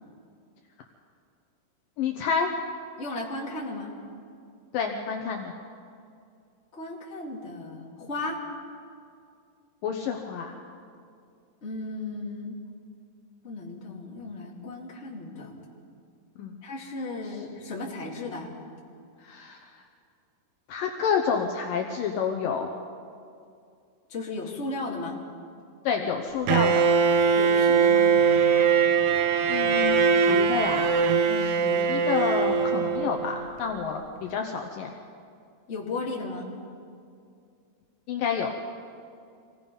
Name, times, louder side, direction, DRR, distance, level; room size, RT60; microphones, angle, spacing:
voice 1, 2.0-2.5 4.7-5.5 9.8-10.6 16.4-16.5 19.2-19.7 20.7-22.7 25.8-26.9 29.5-30.9 31.4-34.9 38.1-38.5, left 6 dB, 90° left, 3 dB, 1.9 m, -29 dB
voice 2, 3.0-3.9 6.7-8.4 11.6-12.5 13.4-15.5 16.6-18.5 24.1-25.2 27.4-28.1 31.3-31.5 35.7-36.5, left 2 dB, 25° left, -3 dB, 1.7 m, -35 dB
Bowed string instrument, 26.5-33.4, right 6 dB, 90° right, 3.3 m, -21 dB
26.0 x 18.5 x 5.4 m, 2.4 s
omnidirectional pair, 5.4 m